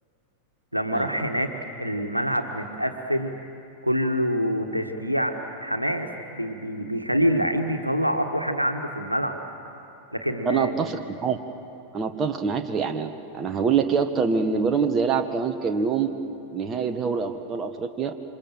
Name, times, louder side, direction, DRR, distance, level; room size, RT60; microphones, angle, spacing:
voice 1, 0.7-1.5 1.8-3.3 3.8-9.4 10.1-10.8, equal, 90° right, 5 dB, 1.5 m, -26 dB
voice 2, 10.4-11.4 11.9-16.1 16.5-18.1, right 6 dB, 25° right, 7 dB, 1.3 m, -25 dB
28.0 x 25.0 x 7.6 m, 2.9 s
figure-of-eight pair, 90°, 0 cm